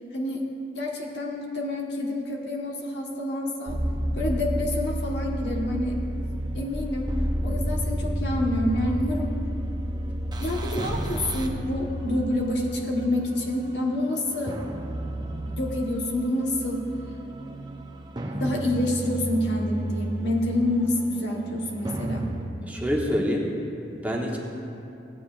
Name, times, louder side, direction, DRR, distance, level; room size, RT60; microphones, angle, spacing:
voice 1, 0.1-0.4 0.7-3.8 4.1-6.0 6.5-7.1 7.4-9.3 10.4-14.6 15.5-16.8 18.3-22.3, left 1 dB, 75° left, -1 dB, 1.3 m, -27 dB
sound 1, 3.7-22.5, right 1 dB, 25° right, 0.6 m, -31 dB
voice 2, 22.6-23.5 24.0-24.4, equal, 10° right, -2 dB, 0.9 m, -27 dB
16.0 x 8.6 x 2.5 m, 2.7 s
head